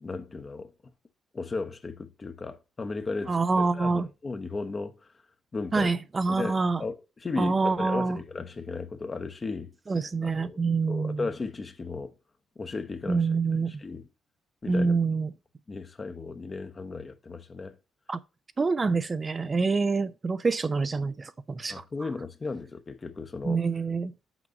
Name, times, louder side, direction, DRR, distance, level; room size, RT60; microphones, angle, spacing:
voice 1, 0.0-0.7 1.3-4.9 5.5-5.9 6.3-9.7 10.2-10.6 10.9-12.1 12.6-13.3 13.7-14.1 14.6-15.0 15.7-17.8 21.7-23.6, left 3 dB, 30° left, 0.8 m, -35 dB
voice 2, 3.3-4.1 5.7-6.8 7.4-8.2 9.9-11.2 13.1-13.8 14.7-15.3 18.1-18.2 18.6-21.8 23.4-24.1, right 4 dB, 30° right, 0.4 m, -26 dB
6.0 x 5.2 x 5.1 m
cardioid pair, 90°, 0 cm